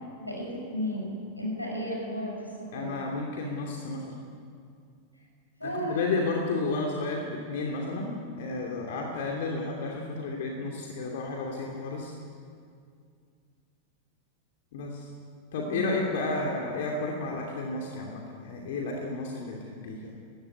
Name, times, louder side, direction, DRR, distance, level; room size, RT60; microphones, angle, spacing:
voice 1, 0.2-2.9 5.6-6.0 15.7-15.9, equal, 90° left, -1 dB, 6.2 m, -34 dB
voice 2, 2.7-4.3 5.6-12.2 14.7-15.1 15.5-20.2, left 3 dB, 55° left, 0 dB, 2.7 m, -32 dB
20.0 x 15.0 x 9.7 m, 2.3 s
figure-of-eight pair, 90°, 0 cm